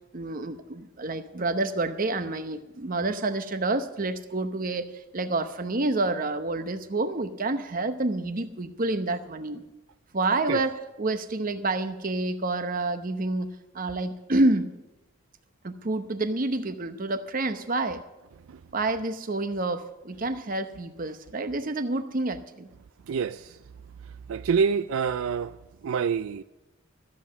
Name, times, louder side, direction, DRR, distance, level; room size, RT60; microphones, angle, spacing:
voice 1, 0.1-9.6 10.1-14.7 15.6-18.0 18.7-22.7, right 2 dB, 40° right, 0.8 m, -28 dB
voice 2, 23.1-23.5 24.3-25.5 25.8-26.4, right 6 dB, 80° right, 0.4 m, -26 dB
13.5 x 7.6 x 8.1 m
head